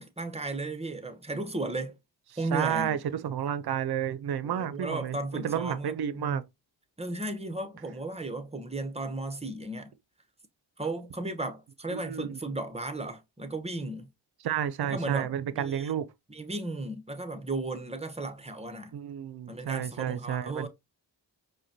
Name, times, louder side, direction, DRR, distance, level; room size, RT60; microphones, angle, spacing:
voice 1, 0.0-2.0 2.4-3.0 4.4-6.4 7.0-9.9 10.8-14.1 14.8-15.9 16.3-18.9 19.5-20.7, right 2 dB, 15° right, 0.9 m, -35 dB
voice 2, 2.5-6.4 11.9-12.4 14.4-16.1 18.9-20.7, right 9 dB, 55° right, 0.6 m, -31 dB
4.9 x 2.2 x 2.7 m
supercardioid pair, 45°, 46 cm